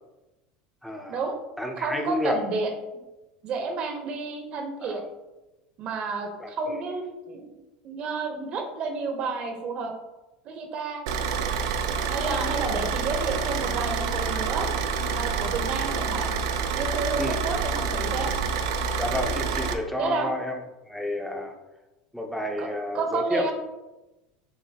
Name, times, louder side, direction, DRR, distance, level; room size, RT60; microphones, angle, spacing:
voice 1, 0.8-1.2 1.6-2.4 4.8-5.0 6.4-6.8 17.2-17.4 19.0-20.6 20.9-21.5 22.1-23.5, left 1 dB, ahead, 3 dB, 0.6 m, -30 dB
voice 2, 1.8-2.7 3.4-5.0 5.8-9.9 10.4-11.0 12.1-14.7 15.1-16.3 16.7-18.3 19.9-20.3 22.6-22.7 22.9-23.5, right 4 dB, 45° right, 4 dB, 0.9 m, -30 dB
Car / Idling, 11.1-19.7, right 5 dB, 80° right, 0.4 m, -27 dB
6.5 x 2.7 x 2.8 m, 1.0 s
supercardioid pair, 120°, 3 cm